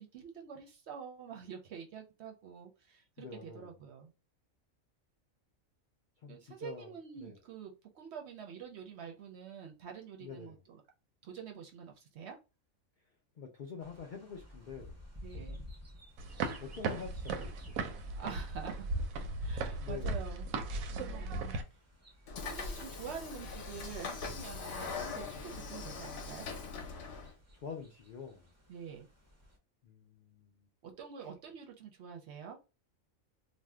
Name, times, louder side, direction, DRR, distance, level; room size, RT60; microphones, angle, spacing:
voice 1, 0.0-4.1 6.3-10.8 11.2-12.4 15.2-15.6 18.2-18.9 19.4-20.5 20.9-21.6 22.4-26.5 28.7-29.1 30.8-32.6, right 7 dB, 65° right, 0.8 m, -47 dB
voice 2, 3.2-3.7 6.2-7.4 10.2-10.6 13.4-15.0 16.6-17.9 19.8-20.2 25.3-26.0 27.5-28.5 29.8-30.7 31.2-31.3, left 5 dB, 75° left, 0.4 m, -47 dB
sound 1, 13.8-29.6, left 1 dB, 20° right, 0.4 m, -54 dB
sound 2, 16.2-21.6, right 3 dB, 85° right, 1.0 m, -37 dB
Train / Sliding door, 22.3-27.3, left 4 dB, 60° left, 0.8 m, -41 dB
2.6 x 2.1 x 3.4 m
omnidirectional pair, 1.4 m